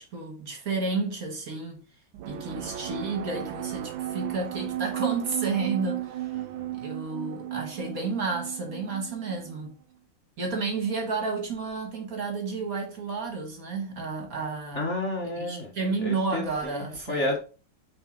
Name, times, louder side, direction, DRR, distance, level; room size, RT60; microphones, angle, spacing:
voice 1, 0.0-1.8 2.3-6.3 6.7-9.7 10.4-14.9 15.4-17.4, right 4 dB, 50° right, 1.8 m, -31 dB
sound 1, 2.1-9.7, right 14 dB, 90° right, 1.4 m, -35 dB
voice 2, 2.2-2.7 6.3-6.8 14.7-15.7 16.0-17.4, left 2 dB, 45° left, 1.2 m, -32 dB
8.9 x 3.5 x 3.8 m
omnidirectional pair, 2.1 m